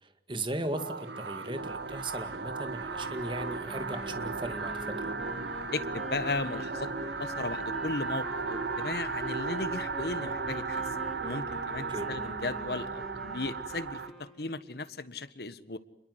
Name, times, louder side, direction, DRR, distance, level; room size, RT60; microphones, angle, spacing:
voice 1, 0.0-5.1 11.9-12.1, right 1 dB, 30° right, 8 dB, 2.1 m, -37 dB
sound 1, 0.7-13.9, right 3 dB, 85° right, 1.4 m, -41 dB
sound 2, 1.6-14.1, right 4 dB, 70° right, 1.5 m, -37 dB
sound 3, 2.8-14.7, equal, ahead, 5.5 m, -45 dB
voice 2, 5.7-6.9 7.2-10.9 11.2-15.8, left 3 dB, 65° left, 13 dB, 1.4 m, -36 dB
29.0 x 22.0 x 8.0 m, 0.82 s
head